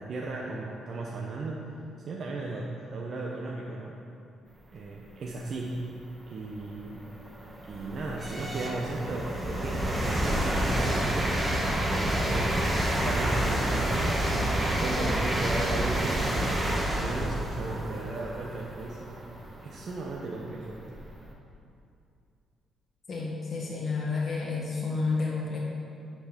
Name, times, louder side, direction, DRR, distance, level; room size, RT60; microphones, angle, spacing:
voice 1, 0.0-1.6 2.1-3.9 4.7-5.9 6.3-7.0 7.7-11.4 11.9-12.6 13.0-19.1 19.6-20.8, right 2 dB, 55° right, -2 dB, 0.9 m, -35 dB
sound 1, 5.8-5.9 6.5-21.3, right 1 dB, 15° right, 1.3 m, -29 dB
voice 2, 23.1-25.6, left 4 dB, 40° left, -4 dB, 1.6 m, -30 dB
9.5 x 4.7 x 5.8 m, 2.5 s
cardioid pair, 90°, 0 cm